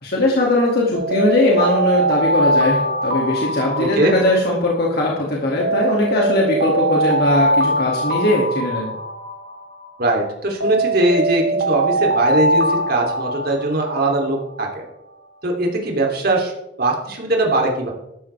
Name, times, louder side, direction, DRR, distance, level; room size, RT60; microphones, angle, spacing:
voice 1, 0.0-8.9, left 1 dB, 60° left, -2 dB, 2.3 m, -19 dB
Alarm, 0.9-5.1 5.6-10.1 10.6-14.4, right 1 dB, 90° right, 1.6 m, -22 dB
voice 2, 3.7-4.1 10.0-14.8 15.4-16.5 16.8-17.9, right 2 dB, 55° right, 0 dB, 3.0 m, -20 dB
13.5 x 12.0 x 3.4 m, 0.85 s
head